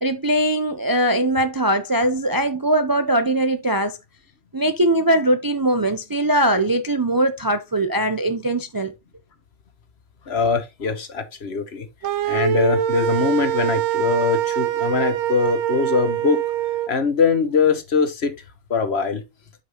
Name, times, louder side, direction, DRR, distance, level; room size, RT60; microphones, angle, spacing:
voice 1, 0.0-4.0 4.5-8.9, right 1 dB, 30° right, 0.4 m, -21 dB
voice 2, 10.3-11.9 12.2-16.4 16.9-18.3 18.7-19.2, left 5 dB, 65° left, 1.4 m, -22 dB
sound 1, 12.0-16.9, right 11 dB, 80° right, 0.9 m, -23 dB
8.1 x 5.9 x 2.9 m
omnidirectional pair, 1.2 m